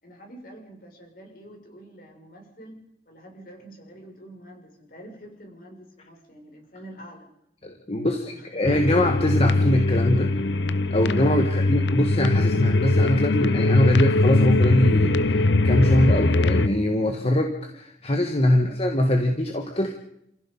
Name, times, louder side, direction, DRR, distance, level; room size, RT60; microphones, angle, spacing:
voice 1, 0.0-7.3 8.0-8.5, right 1 dB, 55° left, 2 dB, 6.8 m, -46 dB
voice 2, 7.6-10.3 10.9-15.4 15.6-19.9, left 1 dB, 35° left, 4 dB, 1.8 m, -23 dB
sound 1, 8.6-16.7, left 2 dB, 80° left, 0.8 m, -21 dB
29.5 x 15.5 x 5.6 m, 0.76 s
head